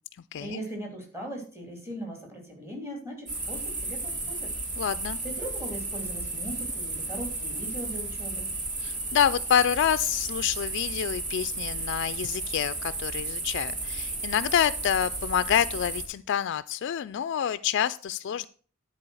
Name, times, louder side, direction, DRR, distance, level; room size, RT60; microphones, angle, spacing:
voice 1, 0.4-4.5 5.2-8.5, right 1 dB, 10° right, 1 dB, 2.8 m, -39 dB
sound 1, 3.3-16.0, right 2 dB, 40° right, 1.8 m, -33 dB
voice 2, 4.8-5.2 8.8-18.5, left 9 dB, 55° left, 14 dB, 0.3 m, -27 dB
10.5 x 4.5 x 6.2 m, 0.42 s
head